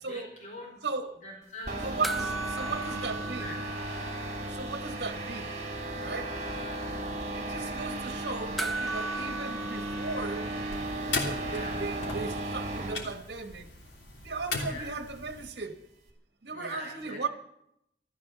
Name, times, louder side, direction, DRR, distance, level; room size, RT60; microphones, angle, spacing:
voice 1, 0.1-0.8 1.2-1.9 2.6-3.5 6.9-7.1 7.5-7.6 11.4-11.8 14.6-14.9 16.5-17.2, left 1 dB, 40° left, 4.9 m, -44 dB
voice 2, 0.8-1.2 1.8-3.5 4.5-5.5 6.0-6.3 7.3-10.5 11.1-13.7 14.2-15.8 16.4-17.3, right 4 dB, 65° right, 1.2 m, -36 dB
sound 1, 1.7-13.0, right 1 dB, 40° right, 3.0 m, -35 dB
sound 2, 2.0-4.7 5.0-5.1 8.6-11.2 13.3-13.4, right 2 dB, ahead, 0.5 m, -37 dB
sound 3, 10.7-15.5, left 3 dB, 85° left, 3.2 m, -38 dB
14.0 x 13.5 x 7.3 m
head